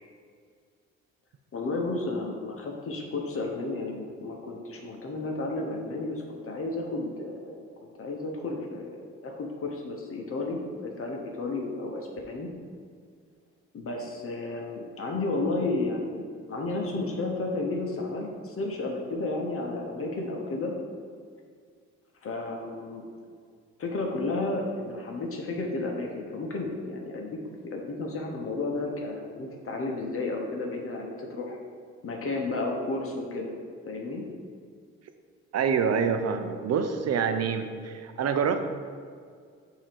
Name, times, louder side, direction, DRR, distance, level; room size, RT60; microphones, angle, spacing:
voice 1, 1.5-7.6 8.0-12.5 13.7-20.7 22.2-23.1 23.8-27.4 27.6-31.6 32.0-33.5 33.9-34.2, left 2 dB, 45° left, 1 dB, 0.9 m, -32 dB
voice 2, 35.5-38.6, right 6 dB, 55° right, 7 dB, 0.6 m, -26 dB
7.3 x 2.9 x 5.1 m, 2.1 s
cardioid pair, 90°, 30 cm